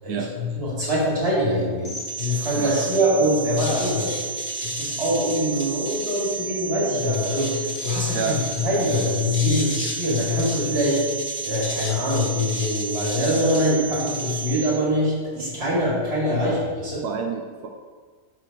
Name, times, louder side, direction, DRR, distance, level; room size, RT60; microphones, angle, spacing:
voice 1, 0.0-4.2 4.6-11.0 11.4-17.0, equal, 40° right, -6 dB, 2.3 m, -23 dB
sound 1, 1.9-14.7, right 2 dB, 40° left, 1.3 m, -31 dB
voice 2, 17.0-17.7, right 6 dB, 85° right, 2 dB, 1.2 m, -29 dB
5.8 x 4.6 x 4.6 m, 1.5 s
omnidirectional pair, 1.7 m